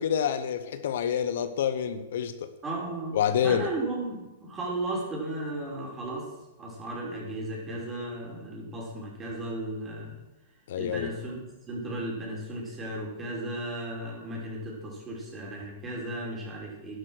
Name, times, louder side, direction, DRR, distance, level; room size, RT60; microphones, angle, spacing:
voice 1, 0.0-2.4 3.1-3.7 10.7-11.1, left 8 dB, 65° left, 1.0 m, -27 dB
voice 2, 2.6-3.2 3.4-6.3 6.6-10.2 10.8-17.0, right 1 dB, 20° right, 5.9 m, -35 dB
11.5 x 11.0 x 6.5 m
hypercardioid pair, 125°, 0 cm